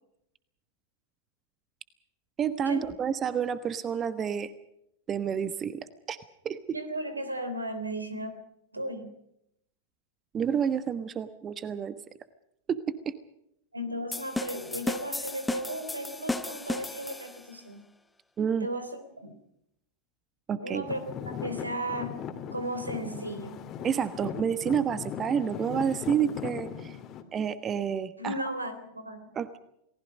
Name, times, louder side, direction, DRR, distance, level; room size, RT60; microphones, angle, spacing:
voice 1, 2.4-4.5 5.1-6.2 6.4-6.8 10.3-12.0 12.7-13.1 18.4-18.7 20.5-20.9 23.8-27.0 27.3-28.3 29.3-29.6, right 7 dB, 25° right, 13 dB, 1.2 m, -29 dB
voice 2, 6.7-8.4 8.7-9.1 13.7-17.9 18.6-19.4 20.6-22.2 22.5-23.7 28.2-29.4, right 1 dB, 85° right, 10 dB, 3.4 m, -35 dB
sound 1, 14.1-17.5, left 2 dB, 5° left, 1.1 m, -34 dB
Traffic noise roadway noise / Engine, 20.9-27.2, left 8 dB, 30° left, 2.5 m, -39 dB
29.5 x 19.5 x 5.3 m, 0.78 s
figure-of-eight pair, 90°, 0 cm